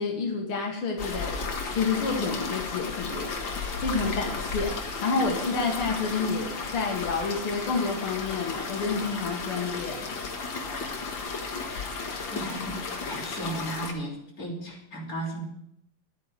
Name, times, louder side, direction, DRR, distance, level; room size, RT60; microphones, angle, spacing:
voice 1, 0.0-3.3 3.8-10.0, left 4 dB, 90° left, 2 dB, 2.7 m, -29 dB
sound 1, 1.0-13.9, left 4 dB, 65° left, 2.4 m, -34 dB
voice 2, 12.3-12.8 13.1-15.5, right 1 dB, 40° left, -3 dB, 3.9 m, -35 dB
11.0 x 9.5 x 8.1 m, 0.78 s
omnidirectional pair, 2.3 m